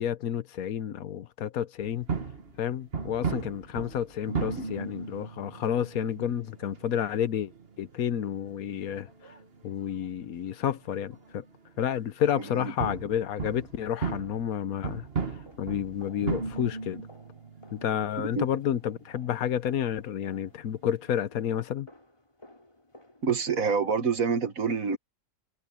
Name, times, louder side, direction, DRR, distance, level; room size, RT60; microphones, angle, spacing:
voice 1, 0.0-2.1 2.6-7.5 7.8-9.1 9.6-11.4 11.8-15.0 15.6-17.0 17.7-21.9, left 9 dB, 85° left, 1.3 m, -30 dB
sound 1, 1.8-21.1, right 5 dB, 45° right, 1.8 m, -37 dB
sound 2, 15.0-23.3, left 1 dB, 20° left, 4.0 m, -57 dB
voice 2, 23.2-25.0, right 5 dB, 75° right, 2.1 m, -27 dB
omnidirectional pair, 1.5 m